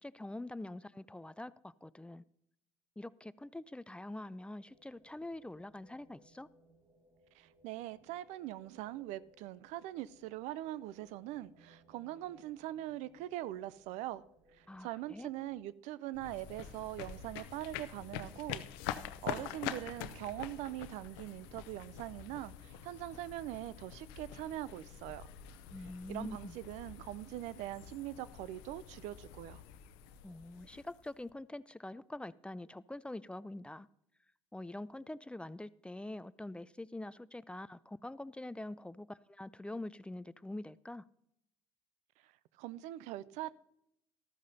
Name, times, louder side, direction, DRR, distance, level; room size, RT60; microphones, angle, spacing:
voice 1, 0.0-2.2 3.0-6.5 14.7-15.3 25.7-26.6 30.2-33.9 34.5-41.1, left 1 dB, 10° left, 0.4 m, -45 dB
sound 1, 4.7-15.6, right 1 dB, 45° right, 1.6 m, -67 dB
voice 2, 7.3-14.2 14.6-18.6 19.2-25.2 26.1-29.6 42.2-42.3 42.6-43.5, right 14 dB, 75° right, 0.4 m, -42 dB
Jogger gravel running sport suburban park, 16.1-31.3, left 10 dB, 85° left, 0.6 m, -46 dB
13.0 x 13.0 x 2.7 m
supercardioid pair, 65°, 12 cm